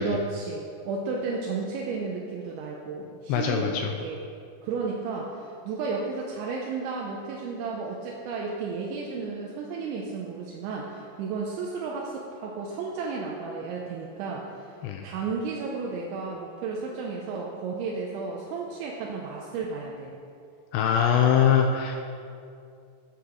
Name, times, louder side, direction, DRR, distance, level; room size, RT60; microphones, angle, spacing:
voice 1, 0.0-4.2 4.6-14.7 15.0-20.2, right 4 dB, 80° right, -2 dB, 3.0 m, -33 dB
voice 2, 3.3-3.9 14.8-15.0 20.7-22.0, left 8 dB, 90° left, 3 dB, 2.4 m, -22 dB
13.5 x 5.4 x 6.3 m, 2.4 s
omnidirectional pair, 5.7 m